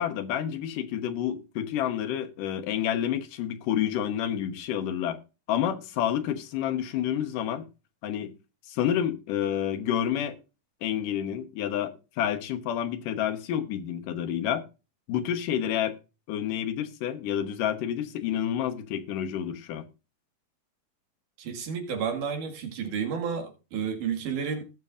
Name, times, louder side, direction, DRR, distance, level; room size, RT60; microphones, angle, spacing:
voice 1, 0.0-5.2 5.5-7.7 8.0-8.3 8.7-10.4 10.8-14.6 15.1-15.9 16.3-19.9, left 10 dB, 85° left, 2.7 m, -29 dB
voice 2, 21.4-24.7, right 6 dB, 80° right, 3.5 m, -31 dB
18.5 x 6.8 x 2.5 m
omnidirectional pair, 3.7 m